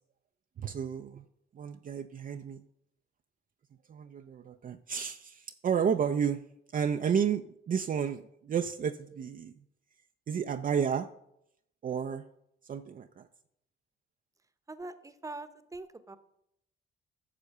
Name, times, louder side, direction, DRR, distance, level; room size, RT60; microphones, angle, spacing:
voice 1, 0.6-1.2 1.5-2.6 3.9-6.4 6.7-9.5 10.3-11.1 11.8-12.2 12.7-13.3, right 7 dB, 45° right, 7 dB, 0.6 m, -31 dB
voice 2, 14.7-16.2, right 2 dB, 15° right, 12 dB, 1.0 m, -43 dB
9.9 x 6.7 x 6.7 m, 0.77 s
cardioid pair, 90°, 20 cm